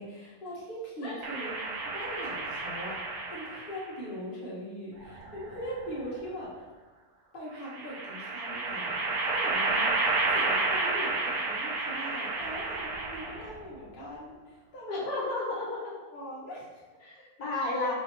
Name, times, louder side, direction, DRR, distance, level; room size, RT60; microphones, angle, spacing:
voice 1, 0.0-6.7 7.3-15.1 16.1-16.8, equal, 40° left, -6 dB, 1.0 m, -41 dB
sound 1, 1.2-3.9 5.0-6.0 7.6-13.6, right 3 dB, 70° right, 1.0 m, -31 dB
voice 2, 14.9-15.8 17.0-17.9, left 2 dB, 65° left, -5 dB, 1.4 m, -32 dB
3.3 x 2.7 x 4.3 m, 1.2 s
omnidirectional pair, 1.8 m